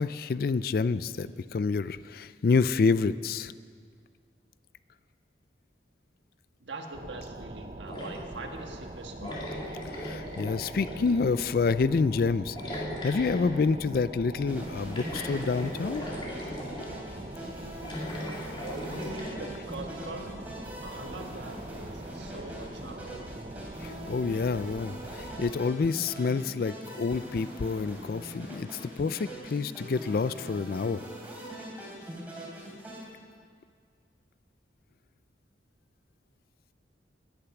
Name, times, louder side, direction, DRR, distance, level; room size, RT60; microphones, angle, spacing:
voice 1, 0.0-3.5 9.2-9.3 9.9-16.0 23.8-31.0, left 4 dB, 50° left, 15 dB, 0.3 m, -28 dB
voice 2, 6.6-9.4 18.6-20.4 20.8-23.3, right 2 dB, 75° right, 3 dB, 1.6 m, -42 dB
sound 1, 6.9-25.5, right 2 dB, 35° right, 0.6 m, -43 dB
sound 2, 7.9-8.5 9.2-11.2 12.6-13.6 14.9-16.9 17.8-19.4, equal, 25° left, 2.4 m, -38 dB
sound 3, 14.5-33.0, equal, 10° right, 3.2 m, -42 dB
18.0 x 10.0 x 5.9 m, 2.1 s
head